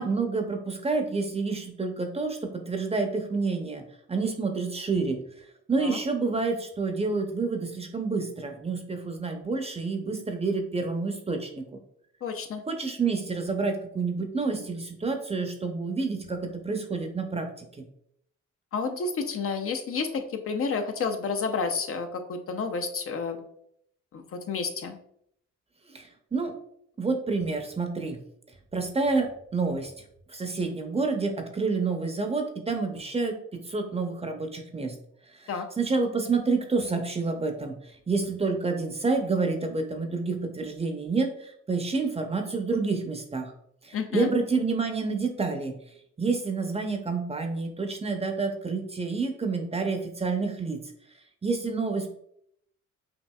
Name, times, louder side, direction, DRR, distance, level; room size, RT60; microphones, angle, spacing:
voice 1, 0.0-3.8 4.1-5.2 5.7-11.7 12.7-17.8 25.9-26.5 27.0-28.2 28.7-29.9 30.3-35.0 35.4-35.5 35.8-37.8 38.1-43.5 43.8-45.7 46.2-50.8 51.4-52.1, right 4 dB, 20° right, 5 dB, 0.6 m, -28 dB
voice 2, 12.2-12.6 18.7-23.4 24.1-25.0 35.5-35.7 43.9-44.3, left 5 dB, 50° left, 6 dB, 0.6 m, -30 dB
5.8 x 2.5 x 2.3 m, 0.69 s
cardioid pair, 90°, 30 cm